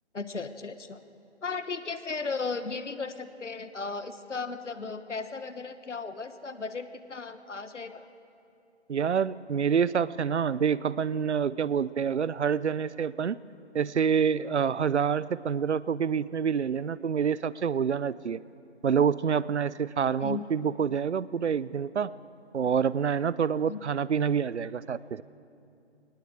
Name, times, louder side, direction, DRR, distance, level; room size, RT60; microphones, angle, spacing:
voice 1, 0.1-1.0 1.4-8.0 20.2-20.4 23.7-23.8, left 4 dB, 85° left, 11 dB, 1.3 m, -36 dB
voice 2, 8.9-13.4 13.7-18.4 18.8-22.1 22.5-25.2, right 7 dB, 70° right, 19 dB, 0.7 m, -27 dB
19.5 x 19.0 x 7.7 m, 2.7 s
figure-of-eight pair, 155°, 35 cm